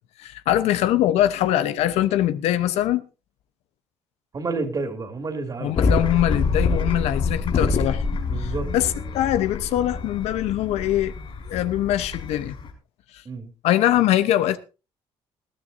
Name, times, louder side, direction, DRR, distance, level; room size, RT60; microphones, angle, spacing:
voice 1, 0.2-3.0 5.6-11.1 11.5-12.5 13.6-14.6, left 12 dB, 90° left, 1.0 m, -22 dB
voice 2, 4.3-5.8 8.3-8.7 13.2-13.5, right 3 dB, 35° right, 2.9 m, -29 dB
sound 1, 5.7-12.7, left 4 dB, 50° left, 5.8 m, -26 dB
20.0 x 13.0 x 2.8 m
cardioid pair, 100°, 11 cm